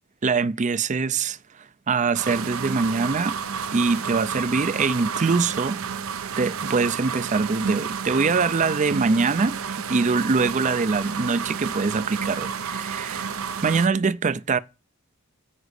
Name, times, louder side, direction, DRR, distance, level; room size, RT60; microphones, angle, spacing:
voice 1, 0.2-1.4 1.9-3.4 3.7-5.8 6.4-13.3 13.6-14.6, right 4 dB, 35° right, 0.5 m, -23 dB
sound 1, 2.1-13.9, right 6 dB, 75° right, 0.7 m, -31 dB
10.0 x 5.1 x 8.1 m
head